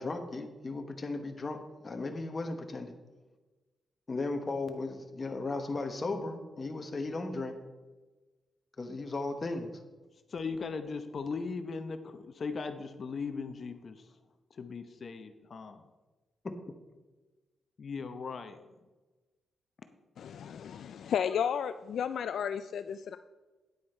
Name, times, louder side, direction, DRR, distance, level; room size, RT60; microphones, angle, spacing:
voice 1, 0.0-2.9 4.1-7.5 8.8-9.7 16.4-16.6, left 3 dB, 30° left, 5 dB, 1.1 m, -36 dB
voice 2, 10.3-14.1 14.5-15.9 17.8-18.6, left 4 dB, 45° left, 9 dB, 0.7 m, -38 dB
voice 3, 20.2-23.2, left 8 dB, 75° left, 11 dB, 0.3 m, -33 dB
9.6 x 8.6 x 4.4 m, 1.2 s
wide cardioid pair, 125°, 0 cm